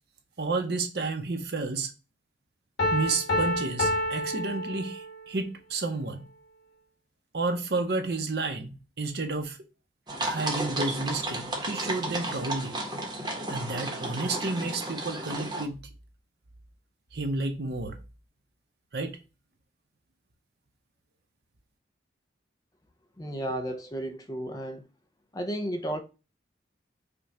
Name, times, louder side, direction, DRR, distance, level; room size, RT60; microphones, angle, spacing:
voice 1, 0.4-1.9 2.9-6.2 7.3-9.6 10.2-12.8 13.5-15.8 17.1-18.0 18.9-19.2, right 3 dB, 60° right, 0.7 m, -31 dB
Piano, 2.8-5.4, left 1 dB, 65° left, 1.7 m, -29 dB
sound 1, 10.1-15.6, right 2 dB, 25° right, 0.9 m, -33 dB
voice 2, 23.2-24.8 25.3-26.0, right 1 dB, 20° left, 0.4 m, -33 dB
5.1 x 2.3 x 2.7 m
head